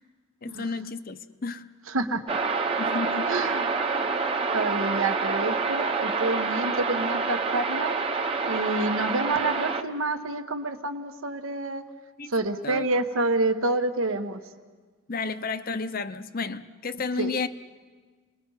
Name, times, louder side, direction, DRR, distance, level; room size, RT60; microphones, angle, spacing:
voice 1, 0.4-1.6 2.8-3.3 12.2-12.3 12.6-12.9 15.1-17.5, left 4 dB, 40° left, 11 dB, 0.7 m, -32 dB
voice 2, 1.9-2.4 3.3-3.7 4.5-8.0 8.4-11.8 12.3-14.4 17.2-17.3, right 2 dB, 75° right, 7 dB, 1.3 m, -28 dB
sound 1, 2.3-9.8, right 4 dB, 25° right, 1.0 m, -27 dB
30.0 x 21.0 x 5.6 m, 1.4 s
head